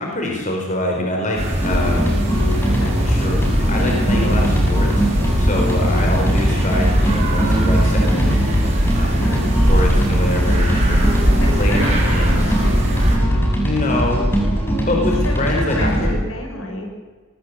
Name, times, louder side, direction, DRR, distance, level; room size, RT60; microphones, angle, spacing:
voice 1, 0.0-1.4 1.6-2.2 3.0-3.4 3.7-5.1 5.4-8.4 8.9-9.3 9.7-11.0 11.6-12.6 13.6-14.2 14.8-16.1, left 1 dB, 35° left, 1 dB, 5.1 m, -24 dB
sound 1, 1.4-13.2, equal, 30° right, 5.7 m, -20 dB
sound 2, 1.6-16.2, right 1 dB, 10° left, 6.1 m, -20 dB
voice 2, 2.6-3.1 9.2-9.7 11.2-13.4 15.2-16.9, left 1 dB, 75° left, 3 dB, 6.6 m, -31 dB
24.0 x 21.0 x 8.0 m, 1.4 s
head